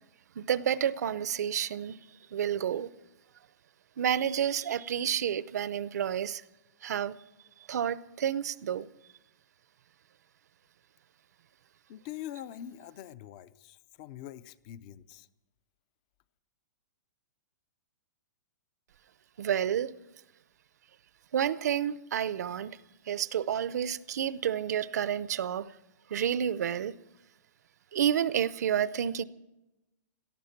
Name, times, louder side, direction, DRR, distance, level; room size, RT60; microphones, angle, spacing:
voice 1, 0.4-2.0 2.3-2.9 4.0-6.4 6.8-7.1 7.7-8.9 19.4-19.9 21.3-22.8 23.1-25.7 26.1-26.9 27.9-29.2, right 9 dB, 60° right, 0.6 m, -30 dB
voice 2, 11.9-15.3, left 11 dB, 25° left, 0.4 m, -44 dB
18.0 x 13.5 x 5.9 m
hypercardioid pair, 175°, 10 cm